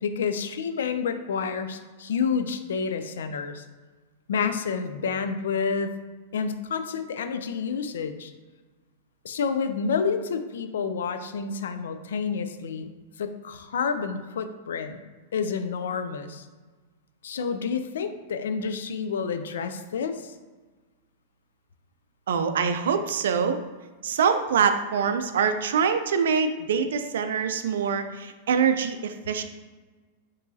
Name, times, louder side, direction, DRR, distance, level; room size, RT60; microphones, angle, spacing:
voice 1, 0.0-3.6 4.3-5.9 6.3-8.3 9.2-12.9 13.2-15.0 15.3-16.5 17.2-20.3, left 6 dB, 90° left, 9 dB, 0.3 m, -29 dB
voice 2, 22.3-23.6 24.0-29.4, right 6 dB, 85° right, 9 dB, 0.4 m, -24 dB
4.5 x 3.0 x 2.7 m, 1.3 s
supercardioid pair, 140°, 0 cm